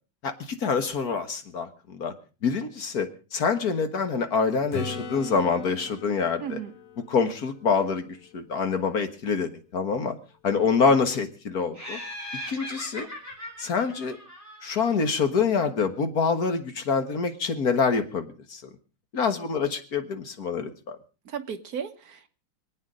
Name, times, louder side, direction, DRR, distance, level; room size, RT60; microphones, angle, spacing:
voice 1, 0.2-2.1 2.4-6.6 7.1-10.2 10.4-12.0 12.5-13.1 13.6-14.2 14.6-18.6 19.1-21.0, left 5 dB, 45° left, 8 dB, 1.9 m, -26 dB
Acoustic guitar / Strum, 4.7-8.5 13.3-13.4, left 4 dB, 80° left, 2.9 m, -40 dB
voice 2, 6.4-6.7 21.2-22.3, right 7 dB, 50° right, 7 dB, 1.6 m, -35 dB
Laughter, 11.7-15.1, equal, 5° left, 5.3 m, -39 dB
26.5 x 8.9 x 5.0 m, 0.35 s
omnidirectional pair, 2.4 m